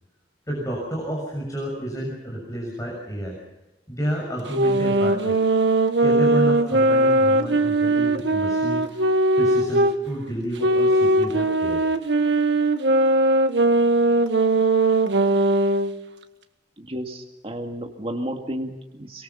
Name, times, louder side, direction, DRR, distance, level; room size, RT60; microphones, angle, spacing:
voice 1, 0.5-3.4 3.9-5.3 6.0-8.9 9.3-11.8, right 1 dB, 20° left, -3 dB, 6.7 m, -30 dB
sound 1, 4.5-10.0 10.6-15.9, right 2 dB, 90° right, 1.5 m, -20 dB
voice 2, 16.8-19.2, equal, 35° right, 2 dB, 2.0 m, -32 dB
25.0 x 23.0 x 5.7 m, 0.99 s
head